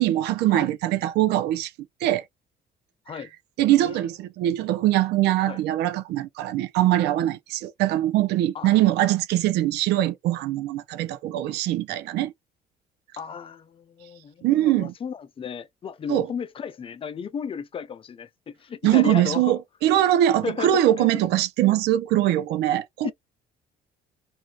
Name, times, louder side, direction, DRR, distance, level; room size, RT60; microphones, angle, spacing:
voice 1, 0.0-1.7 2.0-2.2 3.6-12.3 14.4-14.9 16.1-16.3 18.8-23.1, right 13 dB, 80° right, 0.5 m, -22 dB
voice 2, 13.2-19.6 20.4-21.2 23.0-23.1, left 7 dB, 35° left, 0.5 m, -34 dB
2.6 x 2.4 x 3.0 m
cardioid pair, 110°, 17 cm